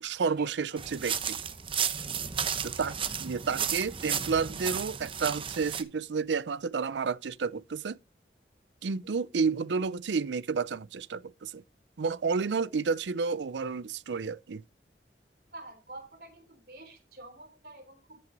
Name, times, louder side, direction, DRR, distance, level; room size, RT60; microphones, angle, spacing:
voice 1, 0.0-1.4 2.6-8.0 8.8-11.6 12.0-14.6, right 5 dB, 90° right, 0.5 m, -31 dB
sound 1, 0.8-5.8, right 7 dB, 30° right, 0.8 m, -33 dB
voice 2, 0.8-1.2 2.3-2.6 9.0-9.2 12.5-12.7 15.5-18.2, right 2 dB, 60° right, 3.6 m, -49 dB
13.5 x 6.1 x 4.0 m
head